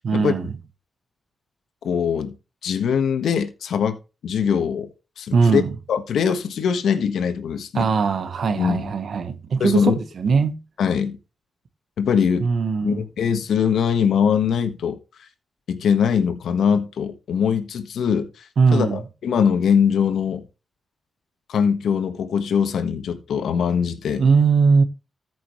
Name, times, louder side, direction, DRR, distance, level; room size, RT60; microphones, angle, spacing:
voice 1, 0.0-0.5 5.3-5.7 7.7-10.6 12.4-13.0 18.6-19.0 24.2-24.8, right 5 dB, 65° right, 1.3 m, -20 dB
voice 2, 1.8-2.3 2.6-4.0 4.2-4.9 5.2-5.6 5.9-7.9 8.5-8.8 9.6-10.0 10.8-11.2 12.0-12.5 12.8-15.0 15.7-18.3 18.7-20.4 21.5-24.2, left 7 dB, 85° left, 1.5 m, -22 dB
14.0 x 6.2 x 3.2 m
cardioid pair, 90°, 0 cm